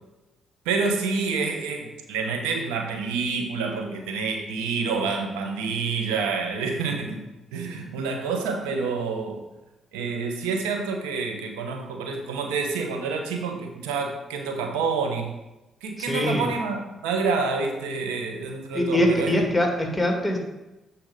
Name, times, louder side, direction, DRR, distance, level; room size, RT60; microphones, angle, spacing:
voice 1, 0.6-7.2 7.5-9.4 9.9-15.3 15.8-19.3, right 4 dB, 90° right, 3 dB, 0.9 m, -28 dB
voice 2, 16.1-16.5 18.7-20.4, left 1 dB, 5° left, 1 dB, 2.1 m, -23 dB
8.3 x 4.4 x 5.0 m, 0.99 s
supercardioid pair, 55°, 0 cm